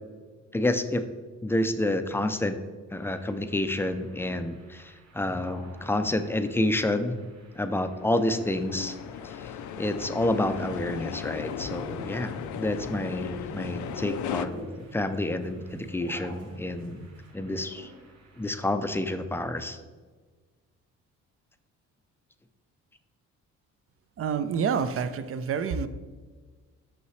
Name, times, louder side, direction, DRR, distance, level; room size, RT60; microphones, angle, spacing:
voice 1, 0.5-1.0 1.4-2.6 2.9-7.2 7.6-9.0 9.2-9.3 9.8-17.0 17.3-17.9 18.4-19.8, left 1 dB, 10° left, 9 dB, 0.4 m, -29 dB
sound 1, 3.0-18.6, equal, 65° right, 1.9 m, -51 dB
sound 2, 8.3-14.5, left 9 dB, 70° left, 0.4 m, -36 dB
sound 3, 11.2-17.3, right 4 dB, 85° right, 1.6 m, -48 dB
voice 2, 24.2-25.9, right 6 dB, 50° right, 12 dB, 0.5 m, -28 dB
5.7 x 5.5 x 3.1 m, 1.4 s
cardioid pair, 90°, 30 cm